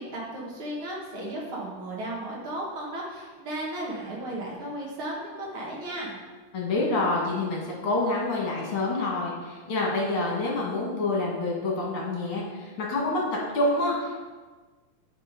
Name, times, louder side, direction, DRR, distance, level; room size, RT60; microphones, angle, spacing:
voice 1, 0.0-6.2, right 1 dB, 50° right, -4 dB, 1.8 m, -35 dB
voice 2, 6.5-13.2 13.5-14.2, left 2 dB, 45° left, -3 dB, 2.1 m, -27 dB
7.6 x 5.4 x 5.2 m, 1.3 s
omnidirectional pair, 4.2 m